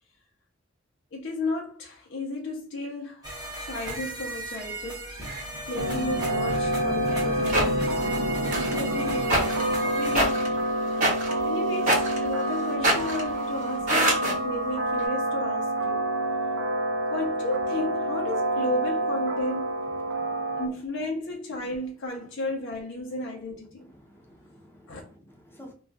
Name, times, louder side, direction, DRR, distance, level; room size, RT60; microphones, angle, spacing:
voice 1, 1.1-3.3 3.6-10.6 11.0-16.0 17.1-19.8 20.6-23.9 24.9-25.0, left 1 dB, 65° left, 0.6 m, -34 dB
sound 1, 3.2-10.2, right 2 dB, 20° right, 0.9 m, -37 dB
sound 2, 5.8-20.7, right 1 dB, 65° right, 0.5 m, -28 dB
sound 3, 7.1-7.7 8.5-14.4 15.0-15.1, right 1 dB, 40° right, 1.0 m, -26 dB
voice 2, 20.1-20.6 23.8-25.7, equal, 10° left, 0.6 m, -52 dB
2.3 x 2.3 x 3.8 m
head